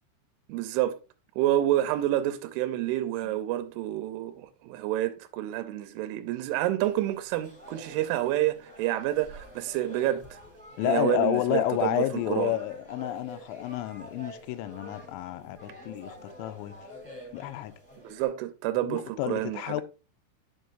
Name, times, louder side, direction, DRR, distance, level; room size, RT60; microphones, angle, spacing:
voice 1, 0.5-1.0 1.4-10.4 10.8-12.5 18.0-19.8, right 14 dB, 85° right, 3.0 m, -28 dB
sound 1, 6.8-18.3, equal, ahead, 2.5 m, -47 dB
voice 2, 10.8-16.8 17.3-17.7 18.8-19.8, left 14 dB, 85° left, 2.7 m, -30 dB
9.3 x 6.4 x 2.6 m
omnidirectional pair, 5.8 m